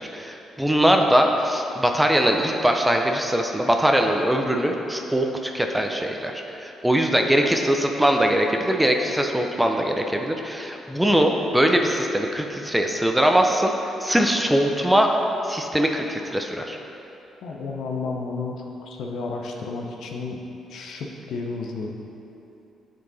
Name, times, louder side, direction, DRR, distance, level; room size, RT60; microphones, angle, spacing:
voice 1, 0.0-6.3 6.6-13.7 14.0-15.1 15.4-16.8, equal, 5° right, 3 dB, 0.5 m, -21 dB
voice 2, 17.4-18.5 18.8-20.4 20.7-21.9, left 4 dB, 75° left, 1 dB, 0.7 m, -32 dB
7.3 x 4.7 x 4.0 m, 2.9 s
cardioid pair, 90°, 0 cm